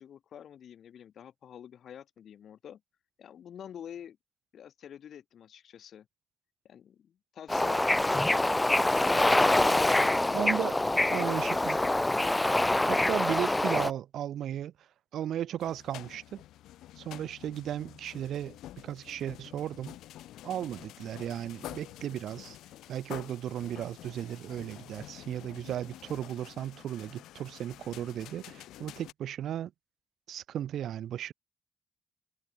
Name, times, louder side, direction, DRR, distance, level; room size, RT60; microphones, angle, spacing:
voice 1, 0.0-2.8 3.2-4.2 4.5-6.1 6.6-9.2 9.7-12.0, left 9 dB, 70° left, 3.5 m, -47 dB
Bird / Ocean, 7.5-13.9, left 1 dB, 15° left, 0.7 m, -25 dB
voice 2, 10.3-10.8 11.1-11.8 12.9-14.7 15.1-16.4 17.0-18.6 18.8-20.0 20.4-22.6 22.9-29.7 30.3-31.3, right 11 dB, 80° right, 1.0 m, -35 dB
sound 1, 15.6-29.1, left 14 dB, 90° left, 3.1 m, -48 dB
supercardioid pair, 60°, 0 cm